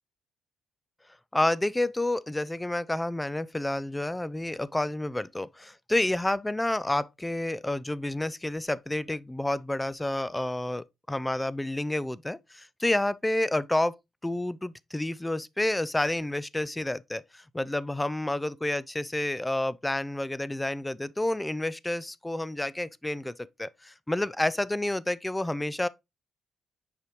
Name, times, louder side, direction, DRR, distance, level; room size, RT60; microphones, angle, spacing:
voice 1, 1.3-13.9 14.2-25.9, left 1 dB, 10° left, 0.3 m, -29 dB
6.6 x 4.9 x 3.0 m
cardioid pair, 90°, 0 cm